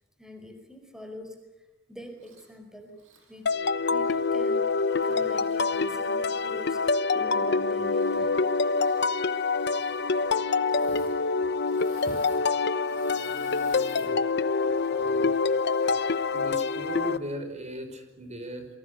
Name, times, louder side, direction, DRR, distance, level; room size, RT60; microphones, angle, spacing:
voice 1, 0.2-1.4 1.9-3.0 3.3-3.5 3.9-6.9 7.1-8.4, equal, 5° right, 5 dB, 4.8 m, -44 dB
Engine / Mechanisms, 2.2-2.5 2.9-4.3 5.0-5.1 7.8-8.4 8.6-9.1 9.6-10.1 10.6-11.2 11.4-14.1 14.6-14.9, right 3 dB, 90° right, 6.9 m, -52 dB
sound 1, 3.5-17.2, left 4 dB, 60° left, 0.9 m, -26 dB
voice 2, 13.5-14.2 14.9-15.4 16.3-18.7, equal, 35° right, 7 dB, 5.2 m, -38 dB
28.0 x 23.5 x 8.3 m, 0.98 s
head